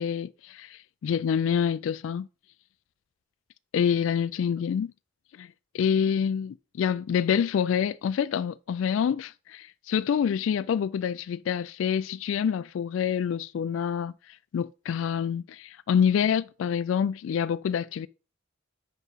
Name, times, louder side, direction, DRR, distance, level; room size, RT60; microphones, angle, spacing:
voice 1, 0.0-2.3 3.7-4.9 5.4-18.1, left 7 dB, 85° left, 0.3 m, -27 dB
6.0 x 5.5 x 5.6 m
head